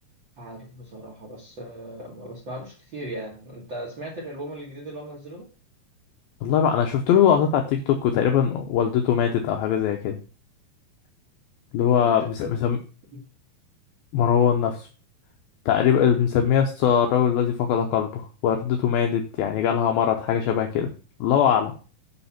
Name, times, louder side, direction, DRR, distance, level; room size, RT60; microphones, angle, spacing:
voice 1, 0.4-5.5 11.9-12.3 13.1-13.2, right 1 dB, 80° right, -2 dB, 1.0 m, -38 dB
voice 2, 6.4-10.2 11.7-12.8 14.1-14.9 15.7-20.9 21.2-21.7, left 8 dB, 75° left, 3 dB, 2.2 m, -21 dB
9.6 x 3.6 x 5.7 m, 0.36 s
omnidirectional pair, 4.9 m